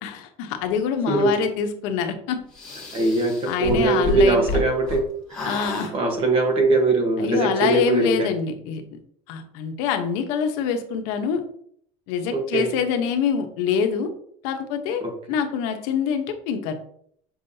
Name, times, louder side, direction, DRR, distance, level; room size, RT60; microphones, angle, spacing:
voice 1, 0.0-2.4 3.5-4.5 5.4-5.9 7.2-8.8 9.3-11.4 12.1-14.1 14.4-16.7, left 7 dB, 75° left, 6 dB, 1.0 m, -25 dB
sound 1, 2.5-5.0 5.3-5.9, left 2 dB, 5° left, 2.2 m, -30 dB
voice 2, 2.9-5.0 5.9-8.3 12.3-12.7 15.0-15.1, right 3 dB, 35° right, 5 dB, 1.2 m, -21 dB
7.3 x 5.6 x 2.8 m, 0.65 s
cardioid pair, 170°, 16 cm